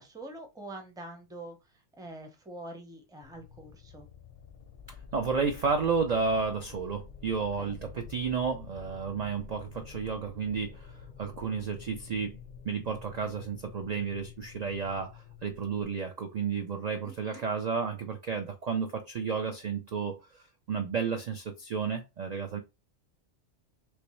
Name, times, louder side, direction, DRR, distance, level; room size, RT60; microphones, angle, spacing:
voice 1, 0.0-4.1 7.6-7.8 17.0-17.4, right 1 dB, 5° right, 0.5 m, -45 dB
sound 1, 3.2-15.8, left 7 dB, 50° left, 0.6 m, -48 dB
voice 2, 4.9-12.4 12.6-22.6, right 5 dB, 60° right, 0.4 m, -32 dB
3.2 x 3.0 x 3.0 m
omnidirectional pair, 1.2 m